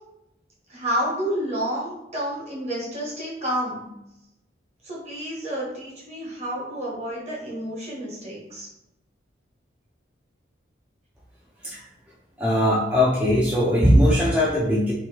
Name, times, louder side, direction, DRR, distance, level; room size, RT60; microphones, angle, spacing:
voice 1, 0.7-3.9 4.8-8.7, equal, 35° right, -5 dB, 1.3 m, -30 dB
voice 2, 12.4-14.9, equal, 5° right, -7 dB, 0.5 m, -19 dB
3.0 x 2.7 x 3.8 m, 0.89 s
head